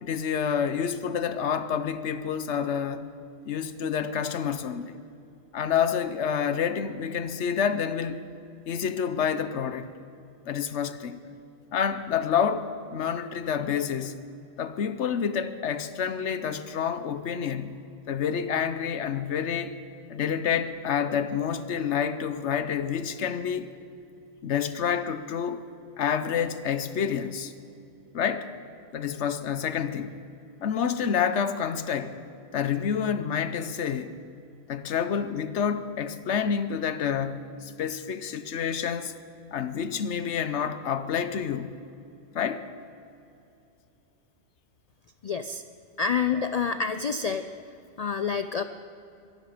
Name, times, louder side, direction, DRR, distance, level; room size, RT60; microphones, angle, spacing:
voice 1, 0.0-3.1 3.4-5.0 5.5-8.2 8.7-9.9 10.5-11.2 11.7-14.2 14.6-19.7 20.1-23.7 24.4-25.6 26.0-27.5 28.1-28.5 28.9-30.1 30.6-32.2 32.5-34.1 34.7-39.1 39.5-41.7 42.3-42.7, left 7 dB, 75° left, 11 dB, 1.1 m, -28 dB
voice 2, 45.2-45.6 46.0-47.5 48.0-48.6, left 6 dB, 55° left, 10 dB, 0.4 m, -27 dB
23.5 x 12.0 x 5.0 m, 2.7 s
omnidirectional pair, 1.2 m